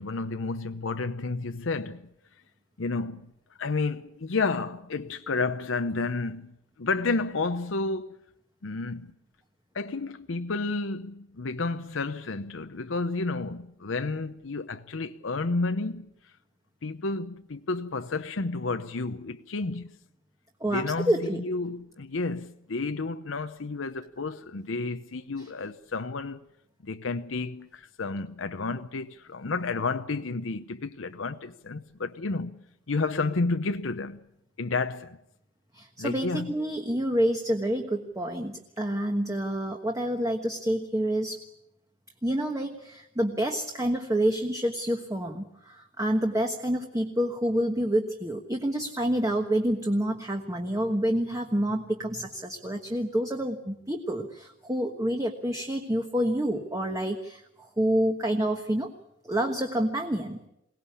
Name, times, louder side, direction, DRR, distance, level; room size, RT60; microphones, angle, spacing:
voice 1, 0.0-2.1 2.8-3.2 3.6-8.2 8.6-9.2 9.7-16.1 16.8-19.9 20.6-26.4 26.8-34.2 34.6-35.2 36.0-36.6, left 3 dB, 85° left, 0.8 m, -31 dB
voice 2, 20.6-21.4 25.4-25.5 35.7-41.4 42.2-57.4 57.8-58.9 59.2-60.4, right 1 dB, 15° right, 1.4 m, -28 dB
23.0 x 18.0 x 8.5 m
head